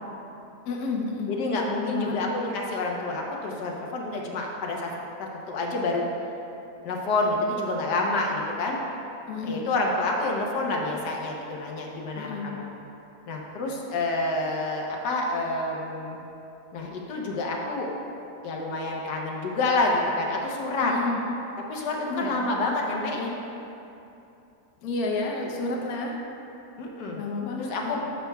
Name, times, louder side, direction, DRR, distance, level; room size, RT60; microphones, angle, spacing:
voice 1, 0.7-1.3 1.8-2.1 9.3-9.7 12.1-12.6 20.8-21.2 22.1-22.4 24.8-26.2 27.1-28.0, left 3 dB, 70° left, 0 dB, 1.2 m, -30 dB
voice 2, 1.3-4.9 5.2-6.0 6.8-8.8 9.4-12.6 13.3-16.2 16.7-17.9 18.4-20.9 21.7-23.3 26.8-27.2 27.6-28.0, left 2 dB, 90° left, -1 dB, 1.5 m, -28 dB
11.0 x 6.6 x 2.3 m, 2.8 s
omnidirectional pair, 1.7 m